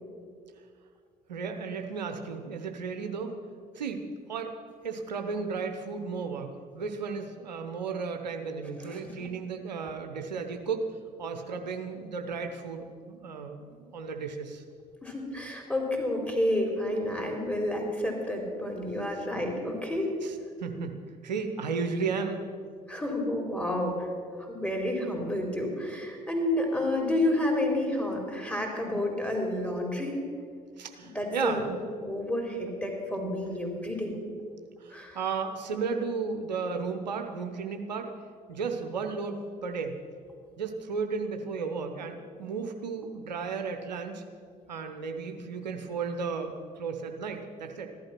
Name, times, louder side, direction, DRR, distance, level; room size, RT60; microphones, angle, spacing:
voice 1, 1.3-3.3 3.7-4.5 4.8-10.9 11.2-14.6 20.2-20.3 20.6-21.0 21.2-22.4 30.8-31.6 34.8-38.1 38.5-39.9 40.6-44.2 44.7-47.9, right 5 dB, 85° right, 5 dB, 0.9 m, -34 dB
voice 2, 8.9-9.3 15.0-20.1 22.9-24.1 24.4-30.2 31.1-34.1 34.9-35.2, left 1 dB, 5° left, 1 dB, 4.1 m, -30 dB
14.5 x 11.5 x 6.0 m, 2.1 s
hypercardioid pair, 55°, 21 cm